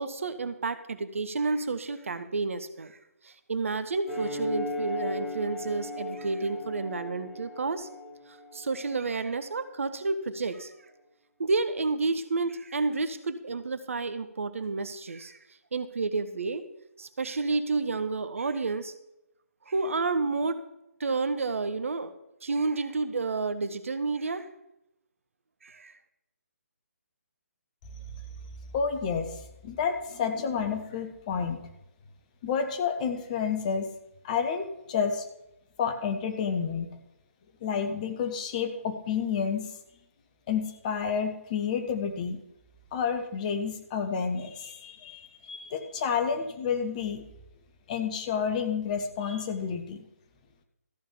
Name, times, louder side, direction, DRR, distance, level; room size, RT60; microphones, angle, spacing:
voice 1, 0.0-3.0 3.2-7.9 8.3-10.7 11.4-15.4 15.7-16.6 17.0-18.9 19.7-20.6 21.0-22.1 22.4-24.5 25.6-25.9, right 3 dB, 60° right, 11 dB, 0.9 m, -30 dB
sound 1, 4.1-9.0, left 2 dB, 45° left, 5.2 m, -36 dB
voice 2, 28.7-29.3 29.6-31.6 32.4-33.9 34.2-35.3 35.8-36.9 37.6-39.7 40.5-42.4 42.9-47.2 47.9-50.0, left 6 dB, 30° left, 6 dB, 1.2 m, -30 dB
13.5 x 5.5 x 6.9 m, 0.86 s
figure-of-eight pair, 140°, 8 cm